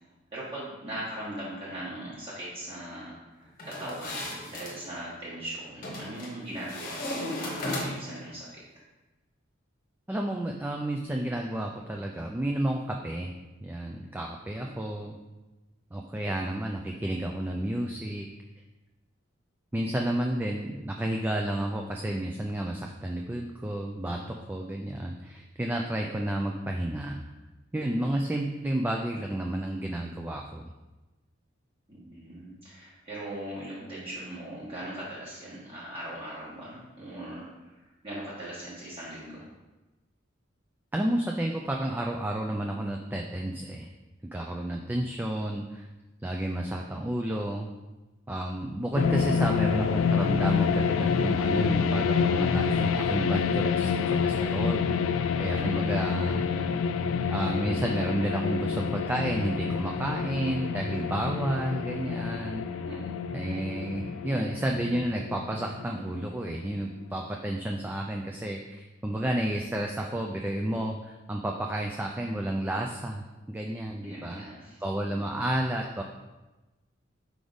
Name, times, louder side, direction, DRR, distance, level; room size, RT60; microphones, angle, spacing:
voice 1, 0.3-8.6 31.9-39.5 55.5-56.8 62.8-63.1 74.0-74.8 75.1-75.2, right 1 dB, 30° right, -9 dB, 1.3 m, -40 dB
sound 1, 3.6-4.8 5.8-6.3 6.7-8.2, left 1 dB, 45° left, 1.1 m, -35 dB
voice 2, 10.1-13.3 13.6-15.2 15.9-18.3 19.7-27.2 27.7-30.6 40.9-43.9 44.3-45.9 46.2-47.7 48.3-54.8 55.1-56.5 57.3-62.6 63.3-74.4 74.8-76.0, right 1 dB, 10° right, 1 dB, 0.3 m, -31 dB
sound 2, 49.0-66.7, left 6 dB, 80° left, 0.3 m, -28 dB
5.0 x 4.8 x 4.0 m, 1.1 s
head